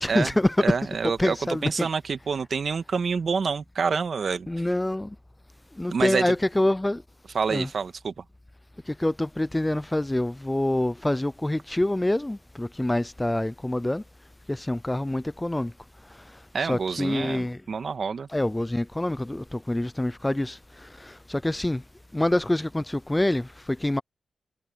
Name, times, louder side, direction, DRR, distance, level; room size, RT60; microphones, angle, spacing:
voice 1, 0.0-0.8 1.2-1.9 4.5-5.1 5.8-7.0 7.5-7.7 9.0-14.0 14.5-15.7 16.6-17.6 18.3-21.8 22.1-24.0, left 1 dB, 15° left, 0.4 m, -26 dB
voice 2, 0.6-1.4 1.6-4.5 5.9-6.3 7.3-8.2 16.5-18.3, right 5 dB, 60° right, 1.6 m, -27 dB
cardioid pair, 75°, 0 cm